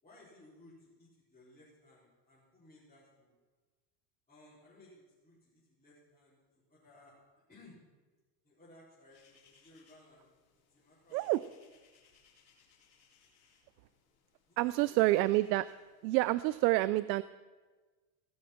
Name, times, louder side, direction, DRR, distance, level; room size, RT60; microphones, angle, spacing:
voice 1, 0.0-3.3 4.3-7.2 7.5-7.8 8.4-10.3 10.7-11.4 14.5-15.1, left 2 dB, 15° left, -10 dB, 4.3 m, -60 dB
sound 1, 9.1-16.6, left 6 dB, 70° left, 3.7 m, -68 dB
voice 2, 14.6-15.7 16.0-17.2, right 18 dB, 90° right, 15 dB, 0.6 m, -28 dB
18.5 x 6.5 x 5.8 m, 1.3 s
supercardioid pair, 140°, 50 cm